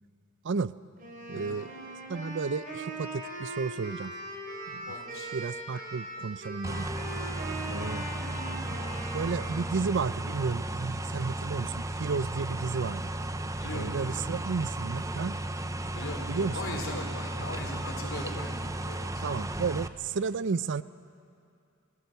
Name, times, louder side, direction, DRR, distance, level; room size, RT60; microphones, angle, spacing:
Wind instrument woodwind instrument, 1.0-9.7, right 1 dB, 40° right, 5.0 m, -40 dB
voice 1, 1.3-4.1 4.7-4.9 5.3-6.9 7.7-8.1 8.7-8.8 9.1-13.0 13.7-15.3 16.3-16.6 19.2-20.8, right 5 dB, 60° right, 16 dB, 0.5 m, -32 dB
voice 2, 4.9-5.3 13.6-14.2 15.9-18.5 18.8-19.2, left 2 dB, 65° left, 1 dB, 3.9 m, -39 dB
sound 1, 6.6-19.9, right 1 dB, 15° right, 0.6 m, -34 dB
29.0 x 18.0 x 6.8 m, 2.5 s
head